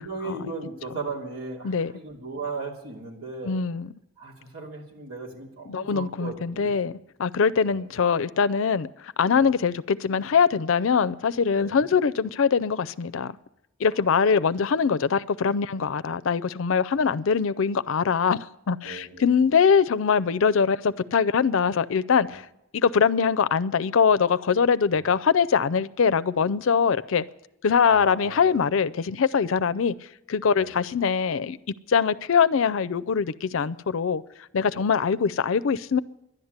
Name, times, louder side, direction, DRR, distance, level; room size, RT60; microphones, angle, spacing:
voice 1, 0.0-3.6 4.2-6.7 7.5-7.9 9.3-9.5 11.5-11.8 14.0-14.2 18.8-19.3 22.3-22.4 24.9-25.0 27.8-28.6 30.5-30.7 34.7-34.9, right 3 dB, 80° right, 2.8 m, -37 dB
voice 2, 3.4-3.9 5.7-6.9 7.2-13.3 13.8-22.4 22.7-27.2 27.6-29.9 30.3-31.6 31.9-34.2 34.5-36.0, left 6 dB, 65° left, 0.4 m, -23 dB
11.0 x 11.0 x 8.0 m
head